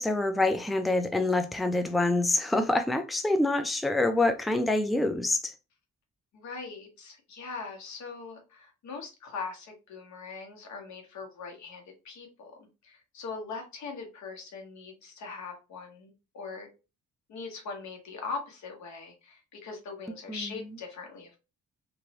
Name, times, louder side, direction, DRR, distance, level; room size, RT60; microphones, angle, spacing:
voice 1, 0.0-5.5 20.3-20.5, left 2 dB, ahead, 0.4 m, -26 dB
voice 2, 6.3-16.7 17.3-21.4, left 4 dB, 65° left, 1.2 m, -41 dB
3.1 x 2.6 x 2.9 m
cardioid pair, 90°, 30 cm